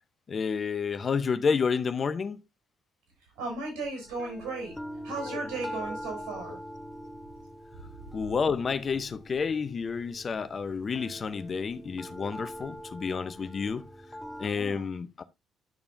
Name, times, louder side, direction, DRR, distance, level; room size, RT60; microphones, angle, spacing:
voice 1, 0.3-2.4 5.2-5.4 8.1-13.9 14.4-15.2, left 5 dB, 40° left, 0.7 m, -30 dB
voice 2, 3.4-4.7 5.0-6.6 14.5-14.9, right 3 dB, 70° right, 6.4 m, -35 dB
sound 1, 4.1-14.5, equal, 10° left, 1.0 m, -43 dB
10.5 x 6.9 x 2.6 m
figure-of-eight pair, 45°, 0 cm